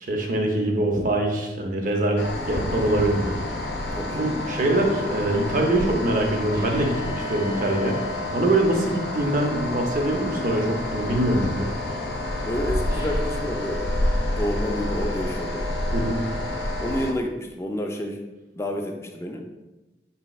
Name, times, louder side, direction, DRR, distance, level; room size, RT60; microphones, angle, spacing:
voice 1, 0.0-3.4 4.1-8.0 8.3-11.7 15.9-16.2, right 1 dB, 50° right, 2 dB, 0.6 m, -23 dB
sound 1, 2.2-17.1, left 1 dB, 75° left, 0.6 m, -29 dB
voice 2, 3.9-4.3 12.5-13.9 14.3-15.7 16.8-18.2 18.6-19.4, left 1 dB, 15° left, 3 dB, 0.3 m, -29 dB
sound 2, 6.5-9.1 10.7-11.0 12.9-13.5, equal, 20° right, 0.9 m, -38 dB
4.1 x 4.0 x 2.3 m, 1.1 s
head